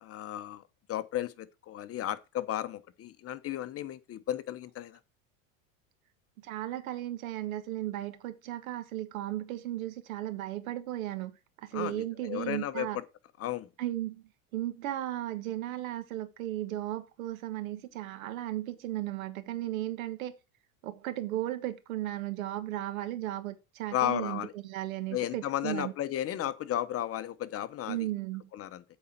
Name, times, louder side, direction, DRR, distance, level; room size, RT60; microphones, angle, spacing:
voice 1, 0.0-0.6 0.9-5.0 11.7-13.0 13.4-13.7 23.9-24.5 25.1-28.0 28.5-28.8, left 12 dB, 35° left, 0.9 m, -34 dB
voice 2, 6.4-11.4 11.6-13.0 13.8-14.2 14.5-20.4 20.8-25.9 27.9-28.4, right 14 dB, 85° right, 1.5 m, -35 dB
8.4 x 4.3 x 7.1 m
supercardioid pair, 105°, 40 cm